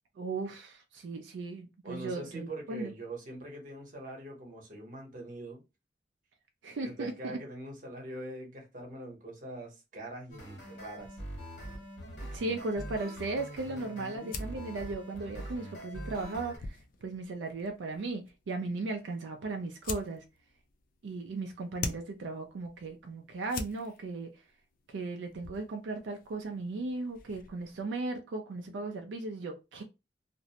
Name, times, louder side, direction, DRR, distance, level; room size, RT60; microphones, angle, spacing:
voice 1, 0.2-2.9 6.6-7.4 12.3-20.2 21.0-24.3 24.9-29.8, right 3 dB, 85° right, 0.4 m, -37 dB
voice 2, 1.8-5.6 6.8-11.2 13.6-14.4, right 1 dB, 45° right, 0.9 m, -43 dB
sound 1, 10.3-16.6, equal, 70° left, 1.2 m, -43 dB
sound 2, 14.2-27.8, left 4 dB, 50° left, 0.4 m, -47 dB
2.5 x 2.0 x 2.7 m
head